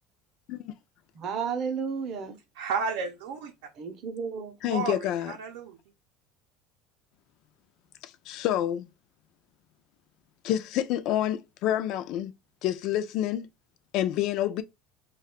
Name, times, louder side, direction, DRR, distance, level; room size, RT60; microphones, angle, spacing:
voice 1, 1.1-2.4 3.8-4.6, right 6 dB, 40° right, 0.6 m, -32 dB
voice 2, 2.6-3.5 4.7-5.8, right 5 dB, 85° right, 0.6 m, -32 dB
voice 3, 4.6-5.4 8.0-8.9 10.4-12.3 12.6-13.5 13.9-14.6, left 12 dB, 50° left, 0.3 m, -28 dB
2.4 x 2.3 x 3.5 m
cardioid pair, 160°, 0 cm